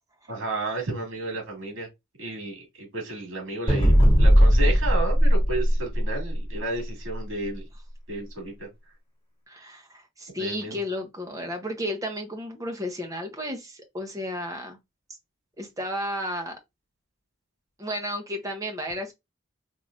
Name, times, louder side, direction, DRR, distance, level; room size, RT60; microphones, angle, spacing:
voice 1, 0.3-1.9 2.2-3.9 4.2-7.6 8.1-8.7 10.4-10.8, right 2 dB, 75° right, 2.2 m, -32 dB
sound 1, 3.7-6.4, equal, 25° left, 1.8 m, -18 dB
voice 2, 9.5-14.8 15.6-16.6 17.8-19.1, equal, 15° right, 0.8 m, -33 dB
3.7 x 3.1 x 2.5 m
head